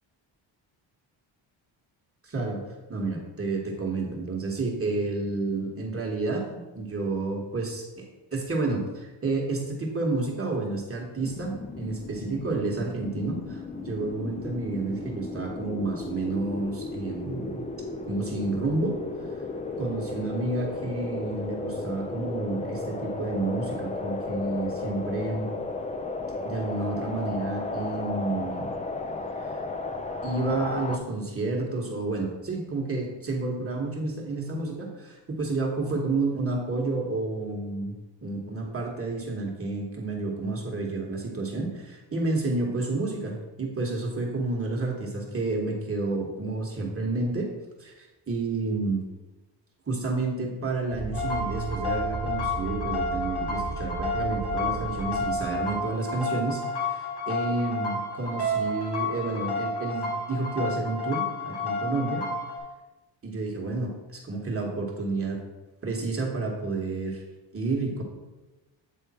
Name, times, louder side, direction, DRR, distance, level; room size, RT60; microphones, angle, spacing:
voice 1, 2.2-2.6 2.9-8.0 8.3-17.6 18.1-19.0 19.8-25.5 26.4-28.7 30.2-37.9 38.2-49.0 49.9-62.3 63.2-65.4 65.8-67.2 67.5-68.0, right 3 dB, 30° right, -1 dB, 1.3 m, -30 dB
sound 1, 11.2-31.0, left 3 dB, 15° left, 0.3 m, -34 dB
sound 2, 50.9-55.9, right 5 dB, 50° right, 0.6 m, -35 dB
sound 3, 51.1-62.6, left 2 dB, 55° left, 2.0 m, -31 dB
8.4 x 3.4 x 4.2 m, 1.1 s
cardioid pair, 110°, 46 cm